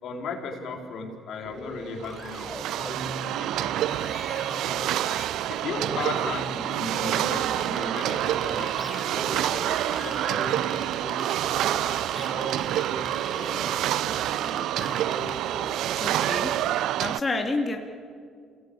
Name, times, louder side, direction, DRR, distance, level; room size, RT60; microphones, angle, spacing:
voice 1, 0.0-3.1 3.4-4.0 4.3-5.0 5.5-9.0 9.3-10.9, left 4 dB, 65° left, 3 dB, 3.9 m, -37 dB
sound 1, 1.4-15.9, equal, 10° left, 3.9 m, -39 dB
sound 2, 2.0-17.2, right 12 dB, 70° right, 0.5 m, -27 dB
sound 3, 7.4-15.3, right 5 dB, 50° right, 3.9 m, -39 dB
voice 2, 16.0-16.5 17.0-17.8, left 3 dB, 30° left, 2 dB, 2.8 m, -28 dB
28.0 x 18.5 x 8.7 m, 2.2 s
hypercardioid pair, 60°, 0 cm